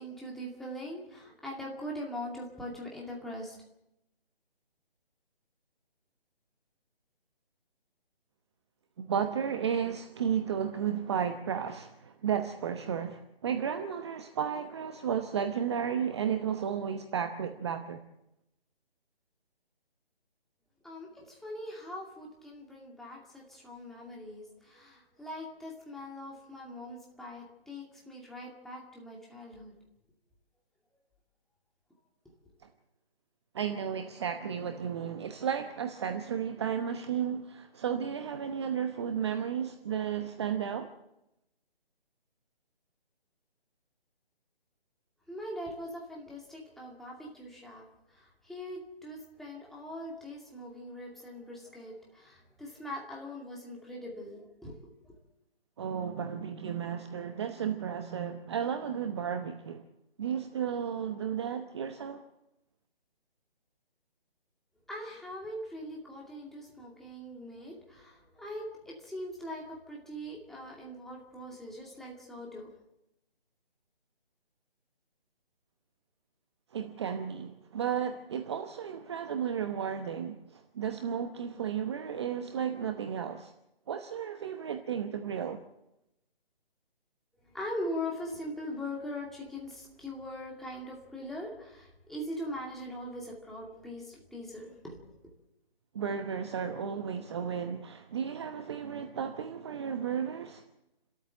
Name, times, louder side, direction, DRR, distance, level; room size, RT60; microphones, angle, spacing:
voice 1, 0.0-3.6 20.8-29.7 45.3-55.1 64.9-72.7 87.5-95.0, left 1 dB, ahead, 2.3 m, -41 dB
voice 2, 9.0-18.0 33.5-40.9 55.8-59.8 60.2-62.2 76.7-83.5 83.9-85.6 95.9-100.6, right 8 dB, 25° right, 0.9 m, -33 dB
29.5 x 13.0 x 7.8 m
figure-of-eight pair, 155°, 30 cm